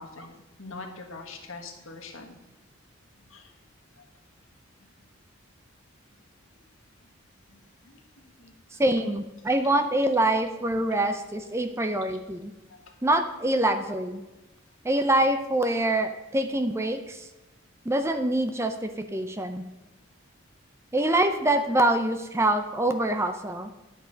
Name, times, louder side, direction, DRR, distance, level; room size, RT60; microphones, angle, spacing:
voice 1, 0.0-2.4 3.2-3.5 4.0-4.1 7.5-8.0 8.4-8.8 9.6-9.7 12.8-12.9, left 3 dB, 75° left, 3 dB, 1.5 m, -44 dB
voice 2, 8.8-12.5 13.0-14.2 14.8-17.3 17.9-19.6 20.9-23.7, right 1 dB, 10° right, 8 dB, 0.5 m, -25 dB
11.0 x 7.1 x 5.1 m, 1.0 s
head